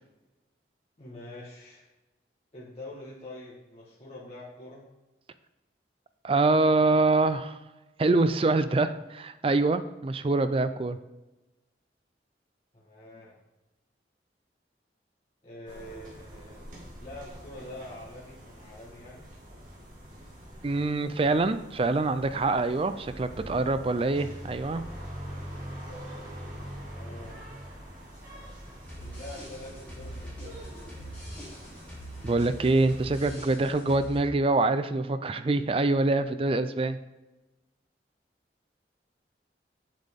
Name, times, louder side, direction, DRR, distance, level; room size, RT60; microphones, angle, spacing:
voice 1, 1.0-1.9 2.5-4.9 12.7-13.3 15.4-16.7 17.0-19.3 26.6-27.4 29.0-30.6, left 1 dB, 35° left, -7 dB, 1.4 m, -45 dB
voice 2, 6.2-7.6 8.0-11.0 20.6-24.8 32.2-37.0, right 2 dB, 30° right, 11 dB, 0.4 m, -25 dB
sound 1, 15.7-33.3, equal, 45° right, 2.7 m, -44 dB
sound 2, 28.8-34.2, right 1 dB, 5° left, 3.1 m, -43 dB
7.5 x 7.2 x 3.7 m, 1.0 s
head